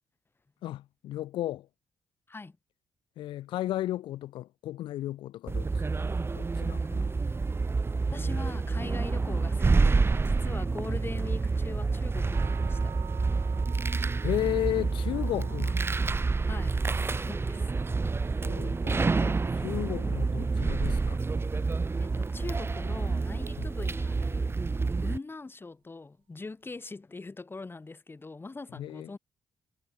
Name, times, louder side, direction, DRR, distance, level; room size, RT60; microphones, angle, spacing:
voice 1, 0.6-1.7 3.2-5.7 6.3-7.1 14.2-15.8 18.4-21.2 23.6-23.7 28.7-29.2, left 14 dB, 90° left, 1.6 m, -34 dB
sound 1, 5.5-25.2, right 4 dB, 30° right, 1.3 m, -28 dB
voice 2, 8.1-13.0 16.4-17.7 22.0-29.2, left 3 dB, 25° left, 3.8 m, -42 dB
sound 2, 12.3-22.4, right 13 dB, 85° right, 3.7 m, -52 dB
cardioid pair, 70°, 8 cm